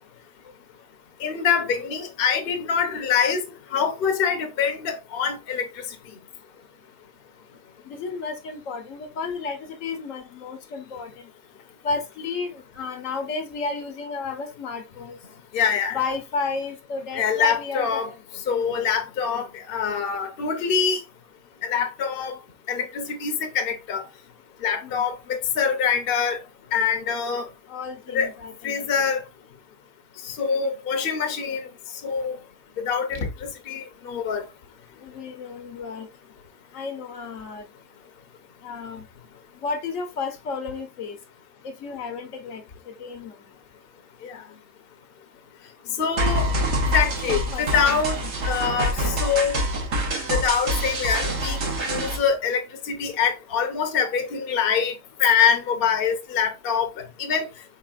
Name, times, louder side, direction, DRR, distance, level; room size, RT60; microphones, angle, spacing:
voice 1, 1.2-3.4 3.7-5.8 15.5-16.0 17.1-18.1 18.5-21.0 21.6-22.3 22.7-24.0 24.6-26.4 26.7-27.5 28.1-28.3 28.6-29.2 30.2-31.7 32.0-32.4 32.8-33.3 33.7-34.4 44.2-44.4 46.0-46.5 46.9-49.6 50.3-54.9 55.2-57.5, left 6 dB, 50° left, 0.9 m, -24 dB
voice 2, 7.9-11.3 11.8-15.2 15.9-18.2 18.9-19.0 24.8-25.0 27.7-28.8 33.1-33.3 35.0-36.1 36.7-37.6 38.6-39.0 39.6-41.2 41.6-43.3 45.8-45.9 47.3-48.0, left 4 dB, 70° left, 1.2 m, -32 dB
sound 1, 46.2-52.2, equal, 55° right, 1.4 m, -25 dB
4.8 x 4.2 x 2.4 m
omnidirectional pair, 1.4 m